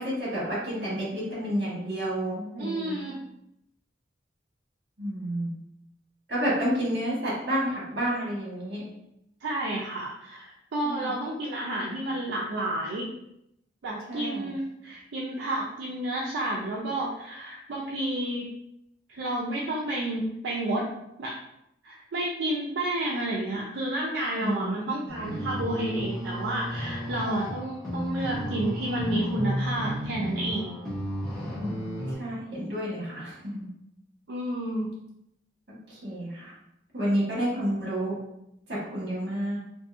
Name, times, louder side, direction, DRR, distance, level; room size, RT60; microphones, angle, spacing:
voice 1, 0.0-3.0 5.0-5.5 6.3-8.8 10.8-11.1 14.1-14.5 24.4-24.8 31.5-33.7 35.9-36.5 36.9-38.2 38.7-39.6, equal, 65° right, -6 dB, 1.2 m, -30 dB
voice 2, 2.6-3.2 9.4-13.1 13.8-18.5 19.1-20.8 21.2-21.3 21.8-30.7 34.3-34.9, right 1 dB, 85° right, -4 dB, 0.4 m, -30 dB
sound 1, 25.1-32.2, equal, ahead, 0.8 m, -33 dB
2.6 x 2.6 x 2.4 m, 0.81 s
head